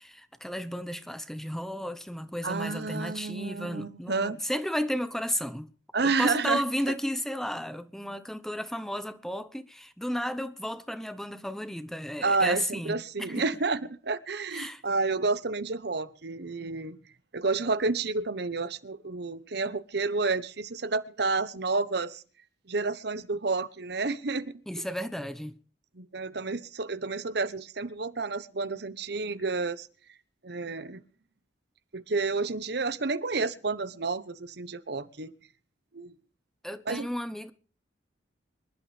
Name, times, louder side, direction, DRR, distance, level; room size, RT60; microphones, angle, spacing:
voice 1, 0.0-5.7 6.0-13.5 14.5-14.8 24.7-25.5 36.6-37.5, equal, ahead, 0.9 m, -33 dB
voice 2, 2.4-4.4 5.9-6.6 12.2-17.0 17.3-22.2 22.7-24.5 26.0-29.9 30.4-31.0 31.9-35.3 35.9-36.1 36.9-37.1, right 3 dB, 60° right, 1.0 m, -30 dB
25.5 x 11.5 x 3.4 m
head